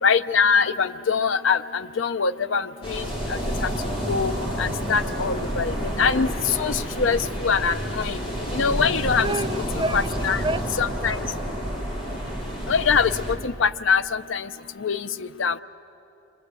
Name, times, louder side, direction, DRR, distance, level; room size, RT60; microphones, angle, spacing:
voice 1, 0.0-3.7 4.1-4.3 4.6-6.3 6.6-8.2 8.5-9.3 9.9-10.4 10.8-11.2 12.7-13.1 13.4-14.5 14.8-15.6, left 5 dB, 85° left, 12 dB, 0.7 m, -23 dB
sound 1, 2.8-13.3, equal, 30° left, 4.0 m, -29 dB
voice 2, 9.2-11.1, right 2 dB, 25° right, 8 dB, 0.6 m, -30 dB
29.5 x 24.5 x 8.3 m, 2.9 s
head